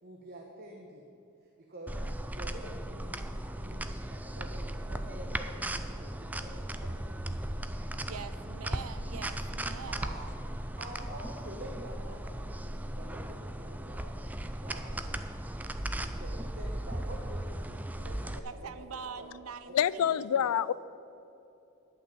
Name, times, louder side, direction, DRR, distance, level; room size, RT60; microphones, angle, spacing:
voice 1, 0.0-1.1 1.4-2.0 2.3-3.2 3.5-7.7 9.8-10.3 10.8-15.3 15.6-19.3 19.7-20.1 20.4-20.5, right 1 dB, 45° right, 0 dB, 1.0 m, -48 dB
sound 1, 1.9-18.4, right 1 dB, 5° right, 0.3 m, -37 dB
voice 2, 7.9-10.2 18.4-20.5, right 6 dB, 80° right, 12 dB, 0.6 m, -44 dB
voice 3, 19.7-20.7, left 9 dB, 90° left, 19 dB, 0.3 m, -26 dB
10.5 x 5.9 x 8.5 m, 2.8 s
head